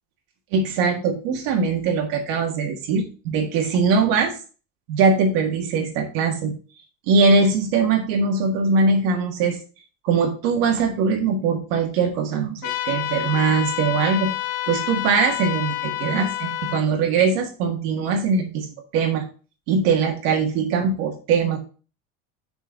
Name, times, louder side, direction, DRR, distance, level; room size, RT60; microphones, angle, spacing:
voice 1, 0.5-4.3 4.9-6.5 7.1-9.6 10.0-14.3 14.7-18.7 18.9-19.2 19.7-21.6, right 4 dB, 65° right, 2 dB, 1.8 m, -21 dB
sound 1, 12.6-16.8, left 15 dB, 65° left, 1.2 m, -28 dB
6.5 x 4.5 x 5.0 m, 0.36 s
cardioid pair, 150°, 36 cm